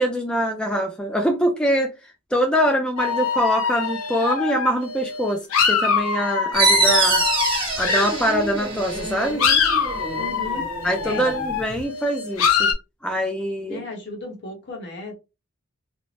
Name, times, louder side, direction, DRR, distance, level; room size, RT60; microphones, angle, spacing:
voice 1, 0.0-1.9 2.3-7.2 7.8-9.4 10.8-12.7 13.0-13.8, equal, 5° left, 0.3 m, -23 dB
sound 1, 3.0-8.4 8.9-12.7, left 6 dB, 75° left, 0.5 m, -24 dB
sound 2, 6.5-11.8, right 3 dB, 25° right, 1.1 m, -24 dB
voice 2, 10.1-10.7 11.0-11.3 13.6-15.1, left 2 dB, 55° left, 0.9 m, -34 dB
2.5 x 2.0 x 3.2 m
head